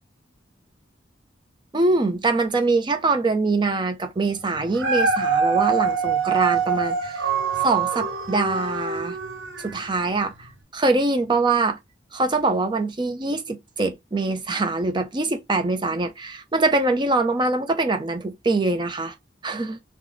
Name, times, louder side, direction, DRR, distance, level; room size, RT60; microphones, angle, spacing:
voice 1, 1.7-7.2 7.6-9.2 9.6-11.8 12.1-19.1 19.4-19.8, right 3 dB, 25° right, 0.5 m, -23 dB
Dog, 4.6-9.9 10.4-10.5, right 6 dB, 80° right, 0.7 m, -24 dB
3.8 x 2.0 x 3.1 m
head